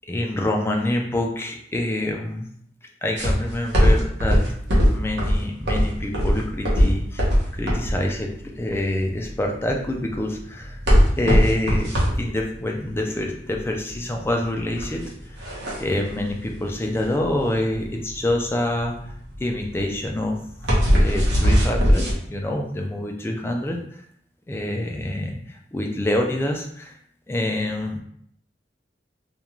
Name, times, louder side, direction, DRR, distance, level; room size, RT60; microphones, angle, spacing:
voice 1, 0.1-2.5 3.0-4.4 4.9-7.3 7.5-8.3 8.6-10.8 11.2-11.9 12.2-15.1 15.7-18.9 19.4-20.4 21.0-23.8 24.5-25.4 25.7-26.9 27.3-28.0, left 1 dB, 15° left, 1 dB, 0.3 m, -26 dB
sound 1, 3.2-22.1, equal, 75° right, 0.8 m, -20 dB
2.4 x 2.2 x 2.9 m, 0.67 s
head